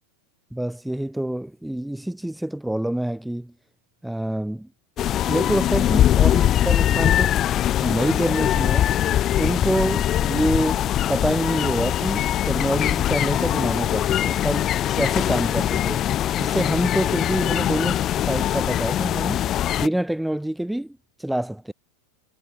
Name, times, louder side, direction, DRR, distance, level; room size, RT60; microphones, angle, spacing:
voice 1, 0.5-3.5 4.0-4.7 5.3-7.5 7.8-8.9 9.3-14.7 15.0-16.1 16.4-19.5 19.8-21.7, right 1 dB, ahead, 6.4 m, -26 dB
sound 1, 5.0-19.9, left 11 dB, 30° left, 2.5 m, -22 dB
supercardioid pair, 140°, 0 cm